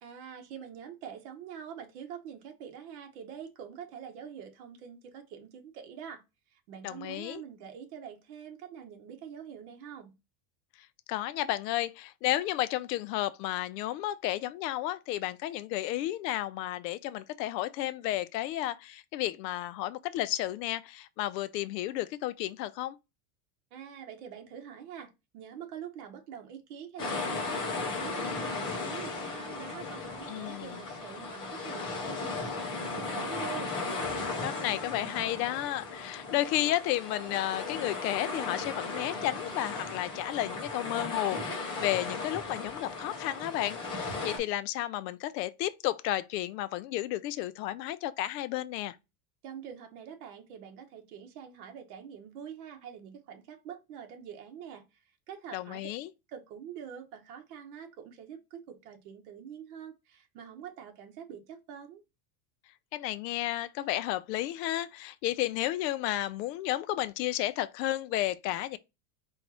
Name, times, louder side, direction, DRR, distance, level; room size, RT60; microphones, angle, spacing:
voice 1, 0.0-6.2 6.5-10.1 23.7-33.7 49.4-55.8 56.3-62.0, right 8 dB, 65° right, 1.1 m, -45 dB
voice 2, 6.8-7.4 11.1-23.0 30.3-30.7 34.4-49.0 55.5-56.1 62.9-68.8, left 14 dB, 90° left, 0.6 m, -32 dB
sound 1, 27.0-44.4, left 3 dB, 10° left, 0.4 m, -36 dB
4.3 x 2.4 x 4.1 m
supercardioid pair, 170°, 48 cm